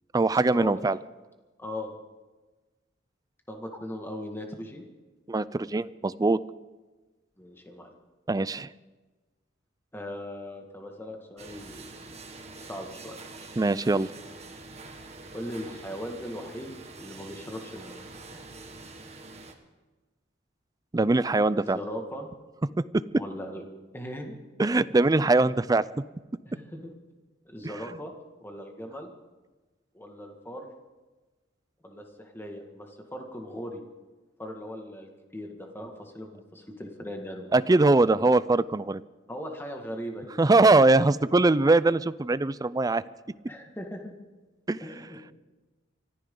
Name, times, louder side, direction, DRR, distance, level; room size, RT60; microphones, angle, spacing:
voice 1, 0.1-1.0 5.3-6.4 8.3-8.7 13.6-14.1 20.9-21.8 22.9-23.2 24.6-25.8 37.5-39.0 40.4-43.0 44.7-44.8, right 2 dB, 20° right, 17 dB, 0.4 m, -22 dB
voice 2, 1.6-1.9 3.5-4.9 7.4-7.9 9.9-11.8 12.6-13.2 15.3-18.0 21.6-22.3 23.2-23.6 23.9-24.3 26.5-26.9 27.5-28.1 28.4-29.1 29.9-30.7 31.8-33.8 34.4-37.9 38.2-38.3 39.3-40.3 43.5-44.1 44.8-45.3, equal, 10° left, 2 dB, 1.9 m, -39 dB
sound 1, 11.4-19.5, right 3 dB, 35° right, 1.6 m, -45 dB
24.5 x 14.5 x 3.9 m, 1.2 s
head